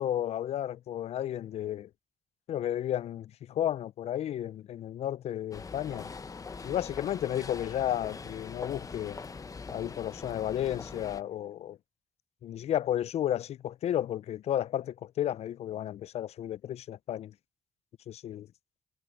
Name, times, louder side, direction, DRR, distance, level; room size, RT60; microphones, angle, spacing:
voice 1, 0.0-1.9 2.5-6.1 6.6-9.2 9.7-11.8 12.4-17.3 18.1-18.5, left 11 dB, 65° left, 0.4 m, -33 dB
sound 1, 5.5-11.2, left 4 dB, 30° left, 0.8 m, -42 dB
cardioid pair, 95°, 12 cm